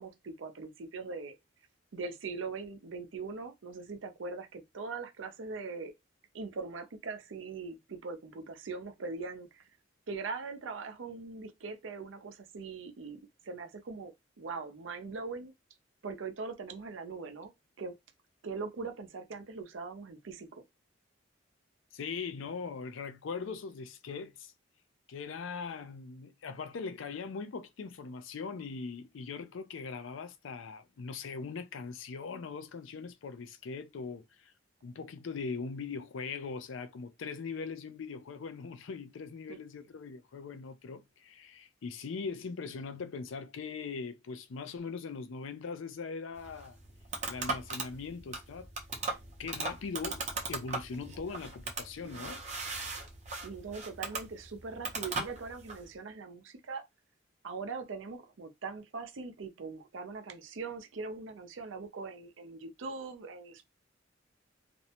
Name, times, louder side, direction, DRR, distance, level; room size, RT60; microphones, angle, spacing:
voice 1, 0.0-1.4 1.9-5.9 6.3-9.7 10.1-14.1 14.4-15.5 16.0-17.5 17.8-17.9 18.4-20.6 39.5-39.6 53.4-56.9 57.4-63.7, right 4 dB, 80° right, 0.6 m, -41 dB
voice 2, 21.9-24.5 25.1-34.5 34.8-46.8 47.3-48.7 49.4-52.4, left 5 dB, 85° left, 0.4 m, -41 dB
sound 1, 46.3-55.8, right 3 dB, 40° right, 0.6 m, -38 dB
2.5 x 2.1 x 2.8 m
head